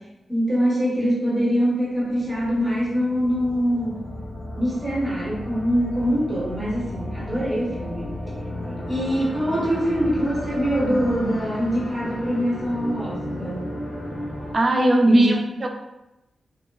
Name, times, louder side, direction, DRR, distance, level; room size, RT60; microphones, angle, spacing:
voice 1, 0.3-4.0 4.6-8.1 8.6-13.6 15.1-15.4, equal, 10° right, -6 dB, 1.0 m, -23 dB
sound 1, 1.8-14.5, left 1 dB, 65° left, 1.2 m, -34 dB
voice 2, 14.5-15.7, right 1 dB, 30° right, 2 dB, 0.3 m, -20 dB
2.9 x 2.2 x 2.2 m, 0.93 s
wide cardioid pair, 125°, 0 cm